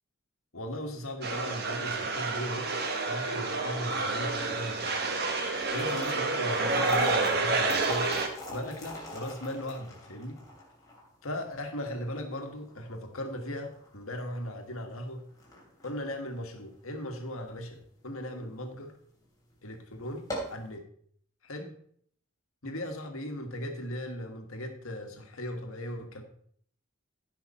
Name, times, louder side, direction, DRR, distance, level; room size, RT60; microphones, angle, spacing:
voice 1, 0.5-2.7 3.1-5.1 5.7-8.1 8.5-10.4 11.2-15.2 15.8-19.0 19.6-20.9 21.4-21.7 22.6-26.2, equal, 70° left, 4 dB, 1.7 m, -38 dB
sound 1, 1.2-8.3, right 3 dB, 45° right, 1.4 m, -29 dB
sound 2, 5.5-17.8 18.2-18.3 19.1-19.2 19.6-19.7 20.1-20.7, equal, 15° left, 3.2 m, -40 dB
15.5 x 5.8 x 4.3 m, 0.62 s
head